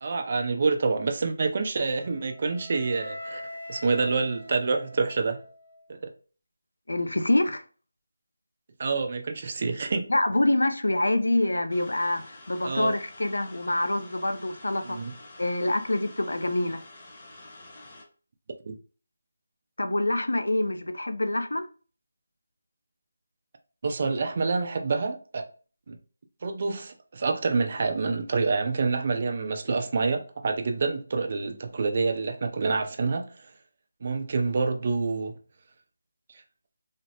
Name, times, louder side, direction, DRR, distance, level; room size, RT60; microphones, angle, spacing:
voice 1, 0.0-3.4 3.7-5.4 5.9-6.1 8.8-10.1 12.6-12.9 14.8-15.1 18.7-18.8 23.8-25.4 25.9-26.0 26.4-33.5 34.0-35.3, right 4 dB, 40° right, 0.4 m, -27 dB
Wind instrument woodwind instrument, 1.9-5.9, equal, 65° left, 1.0 m, -43 dB
voice 2, 6.9-7.6 10.1-15.0 15.4-16.8 19.8-21.7, left 1 dB, 85° left, 0.4 m, -26 dB
sound 1, 11.7-18.0, left 2 dB, 30° left, 0.8 m, -48 dB
3.2 x 2.1 x 2.7 m
figure-of-eight pair, 165°, 0 cm